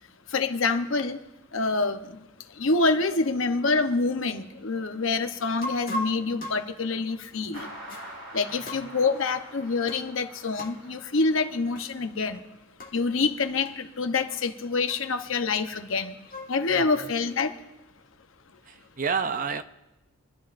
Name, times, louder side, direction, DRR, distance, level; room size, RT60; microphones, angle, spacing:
voice 1, 0.3-1.2 1.5-2.2 2.6-7.7 8.3-12.4 12.9-16.1 16.5-17.5, left 3 dB, 65° left, 0.8 m, -26 dB
sound 1, 5.6-8.2 8.7-9.3 9.9-10.1 10.6-10.8 11.7-11.9 12.2-12.3 12.8-13.0 13.7-13.8 14.3-14.4 14.9-15.3 15.9-16.7, left 1 dB, 40° left, 1.4 m, -38 dB
sound 2, 7.5-12.3, right 1 dB, 60° right, 2.4 m, -45 dB
voice 2, 16.7-17.1 18.7-19.6, right 5 dB, 40° right, 0.5 m, -30 dB
24.0 x 12.5 x 2.5 m
head